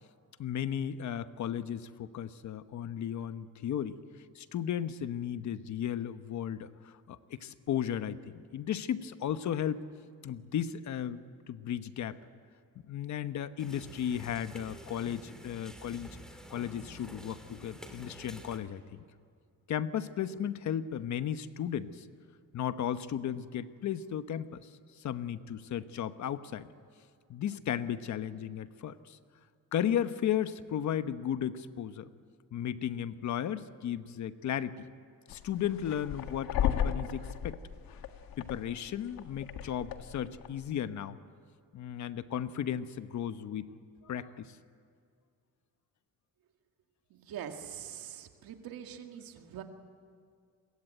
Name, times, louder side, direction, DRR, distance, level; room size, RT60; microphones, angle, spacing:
voice 1, 0.4-4.0 4.3-9.8 10.2-12.2 12.8-16.2 16.5-19.0 19.7-22.0 22.5-24.7 25.0-26.7 27.3-29.2 29.7-32.1 32.5-34.9 35.3-37.6 38.4-41.2 41.7-43.7 44.0-44.6, left 9 dB, 55° left, 11 dB, 1.1 m, -35 dB
sound 1, 13.6-18.6, equal, ahead, 2.4 m, -49 dB
sound 2, 35.3-40.7, left 9 dB, 85° left, 1.8 m, -35 dB
voice 2, 47.1-49.6, right 9 dB, 85° right, 5 dB, 2.1 m, -43 dB
27.5 x 22.5 x 9.1 m, 2.3 s
cardioid pair, 175°, 34 cm